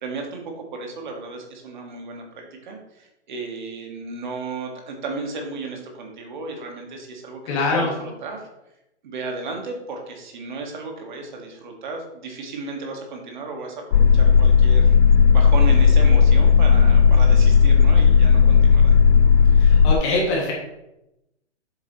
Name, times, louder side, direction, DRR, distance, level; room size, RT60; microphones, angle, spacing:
voice 1, 0.0-8.5 9.0-14.9 15.3-19.0, right 3 dB, 40° right, 2 dB, 1.8 m, -34 dB
voice 2, 7.5-7.9 19.6-20.5, left 2 dB, 25° left, -3 dB, 2.0 m, -23 dB
sound 1, 13.9-19.9, left 6 dB, 70° left, 0.6 m, -14 dB
7.5 x 7.2 x 3.0 m, 0.89 s
hypercardioid pair, 165°, 35 cm